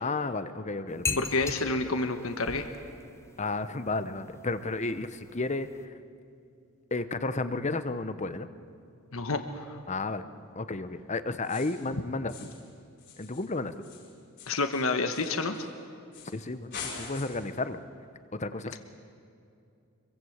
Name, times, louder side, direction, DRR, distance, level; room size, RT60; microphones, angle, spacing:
voice 1, 0.0-1.2 3.4-5.7 6.9-8.5 9.9-10.2 10.5-12.3 13.2-13.7 16.3-17.8 18.3-18.8, left 3 dB, 30° left, 12 dB, 0.9 m, -32 dB
sound 1, 0.9-5.9, left 3 dB, 15° left, 1.2 m, -40 dB
voice 2, 1.2-2.6 9.1-9.4 14.5-15.6, left 3 dB, 65° left, 7 dB, 1.3 m, -28 dB
sound 2, 11.4-11.9 12.3-12.7 13.0-15.7 16.1-16.4 16.7-17.6, left 5 dB, 50° left, 7.6 m, -44 dB
25.5 x 23.0 x 8.1 m, 2.5 s
head